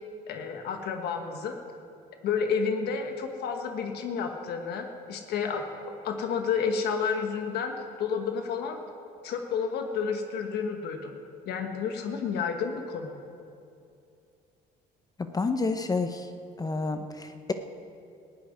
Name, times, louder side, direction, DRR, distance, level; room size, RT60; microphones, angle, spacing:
voice 1, 0.3-1.6 2.2-5.6 6.0-8.8 9.2-11.1 11.5-13.2, left 6 dB, 75° left, 5 dB, 1.3 m, -30 dB
voice 2, 15.3-16.3 16.6-17.5, left 3 dB, 20° left, 8 dB, 0.7 m, -29 dB
14.5 x 7.8 x 9.6 m, 2.5 s
cardioid pair, 110°, 17 cm